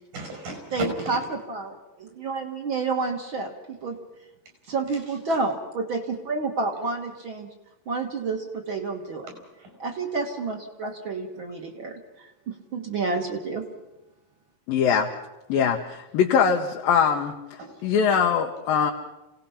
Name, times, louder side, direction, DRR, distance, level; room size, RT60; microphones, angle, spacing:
voice 1, 0.1-1.2 5.1-5.4 9.3-9.8 17.6-18.3, right 2 dB, 70° right, 3 dB, 6.9 m, -37 dB
voice 2, 0.7-4.0 4.7-7.5 7.9-9.3 9.8-13.7, right 3 dB, 45° right, 4 dB, 1.8 m, -30 dB
voice 3, 14.7-15.1 15.5-17.3 17.8-18.9, left 7 dB, 90° left, 1 dB, 2.9 m, -22 dB
27.5 x 17.5 x 5.7 m, 0.99 s
omnidirectional pair, 4.0 m